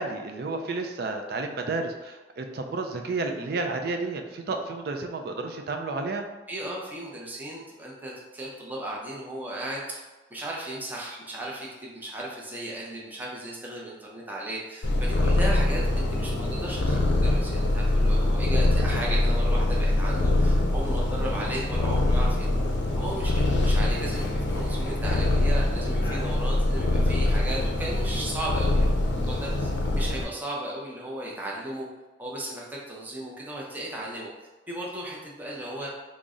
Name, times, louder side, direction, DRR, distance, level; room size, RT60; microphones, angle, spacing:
voice 1, 0.0-6.2, right 3 dB, 60° right, 4 dB, 0.4 m, -31 dB
voice 2, 6.5-10.0 10.3-22.5 23.0-28.8 29.3-29.7 29.9-31.9 32.2-34.3 34.7-35.9, right 1 dB, 10° right, -4 dB, 0.5 m, -35 dB
Purr, 14.8-30.2, left 1 dB, 75° left, 0.5 m, -24 dB
3.8 x 2.0 x 3.6 m, 1.2 s
head